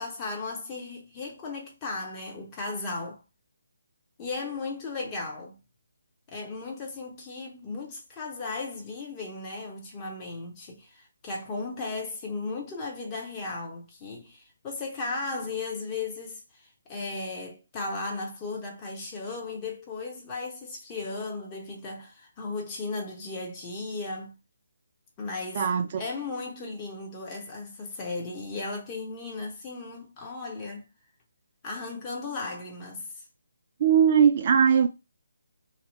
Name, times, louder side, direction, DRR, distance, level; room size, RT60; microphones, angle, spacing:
voice 1, 0.0-3.2 4.2-5.6 6.3-24.3 25.2-25.7 26.0-30.9 31.6-33.2, left 3 dB, 20° left, 0.7 m, -36 dB
voice 2, 33.8-34.9, right 7 dB, 35° right, 0.3 m, -19 dB
2.8 x 2.1 x 3.0 m
figure-of-eight pair, 145°, 0 cm